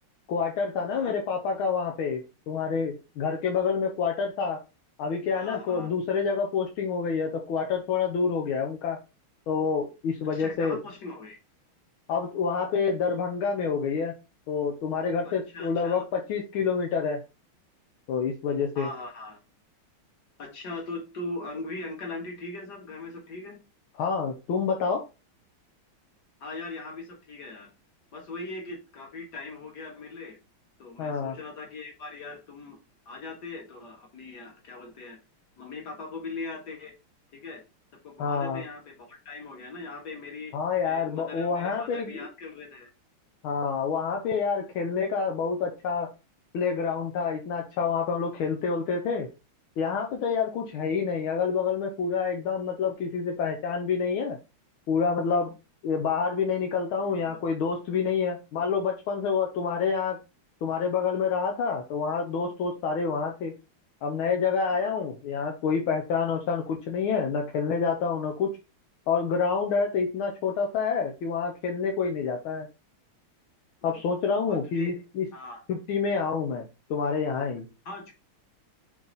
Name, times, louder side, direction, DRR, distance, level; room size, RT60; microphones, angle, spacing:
voice 1, 0.3-4.6 5.0-9.0 9.5-10.8 12.1-14.1 14.5-17.2 18.1-18.9 24.0-25.1 31.0-31.3 38.2-38.6 40.5-42.3 43.4-46.1 46.5-49.3 49.8-54.4 54.9-55.5 55.8-60.2 60.6-63.5 64.0-68.5 69.1-72.7 73.8-75.3 75.7-77.7, left 5 dB, 80° left, 2 dB, 1.7 m, -28 dB
voice 2, 5.4-5.9 10.3-11.4 15.2-16.0 18.8-19.4 20.4-23.6 26.4-27.7 28.1-30.4 30.8-32.8 33.1-35.2 35.6-36.9 37.3-37.6 38.0-40.6 40.8-42.9 57.0-57.4 64.7-64.9 74.5-74.9 75.3-75.6 77.9-78.1, left 3 dB, 55° left, 2 dB, 2.2 m, -40 dB
5.8 x 4.1 x 4.0 m, 0.28 s
omnidirectional pair, 2.3 m